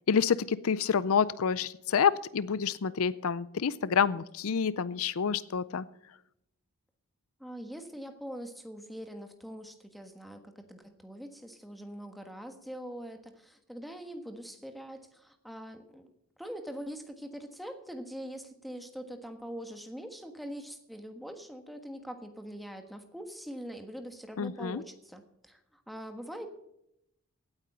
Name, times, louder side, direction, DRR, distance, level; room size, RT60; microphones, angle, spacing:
voice 1, 0.1-5.9 24.4-24.8, left 6 dB, 70° left, 18 dB, 0.5 m, -28 dB
voice 2, 7.4-16.1 16.4-26.5, equal, ahead, 6 dB, 1.4 m, -43 dB
17.0 x 9.0 x 5.7 m, 0.80 s
head